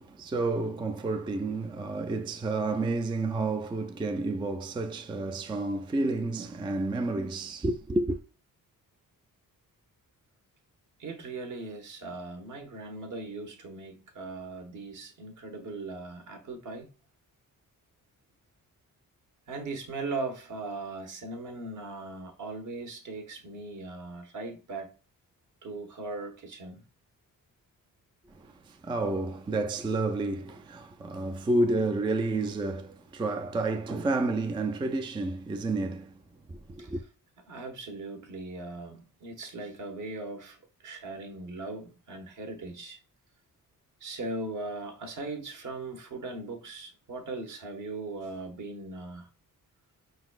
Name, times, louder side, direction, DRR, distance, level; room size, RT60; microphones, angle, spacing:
voice 1, 0.0-8.2 28.3-36.2 36.5-37.0, right 2 dB, 15° right, 0.3 m, -30 dB
voice 2, 11.0-16.9 19.5-24.9 25.6-26.8 36.8-36.9 37.5-43.0 44.0-49.3, right 3 dB, 60° right, 1.2 m, -39 dB
5.4 x 3.9 x 2.4 m
wide cardioid pair, 135°, 34 cm